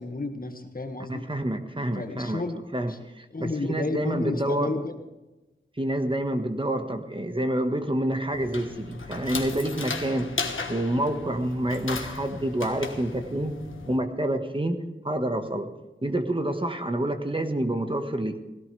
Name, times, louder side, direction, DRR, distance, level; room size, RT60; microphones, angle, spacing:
voice 1, 0.0-1.2 1.9-2.6 2.9-3.0 3.3-4.9, left 3 dB, 45° left, 5 dB, 1.7 m, -31 dB
voice 2, 1.1-2.4 2.7-4.7 5.8-10.3 10.7-13.5 13.8-14.8 15.0-15.7 16.0-18.4, right 1 dB, 25° right, 6 dB, 1.5 m, -28 dB
sound 1, 8.3-14.0, left 4 dB, 90° left, 1.4 m, -36 dB
17.5 x 16.5 x 3.4 m, 1.1 s
wide cardioid pair, 45°, 20 cm